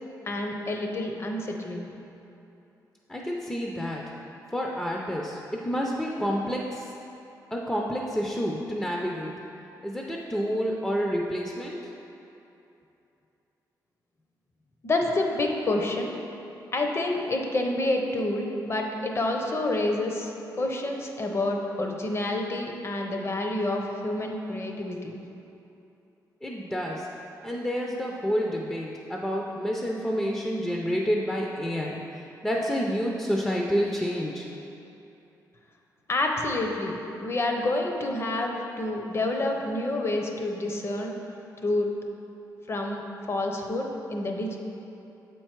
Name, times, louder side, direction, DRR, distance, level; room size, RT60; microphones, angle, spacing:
voice 1, 0.3-1.9 14.8-16.2 16.7-25.2 36.1-41.2 41.6-41.9 42.7-43.0 43.3-44.6, left 2 dB, 35° left, 2 dB, 0.8 m, -28 dB
voice 2, 3.1-4.0 4.5-6.9 7.5-9.3 9.8-11.9 26.4-27.1 27.4-32.0 32.4-34.5, equal, 10° left, -1 dB, 0.5 m, -29 dB
7.1 x 4.5 x 4.5 m, 2.9 s
cardioid pair, 100°, 7 cm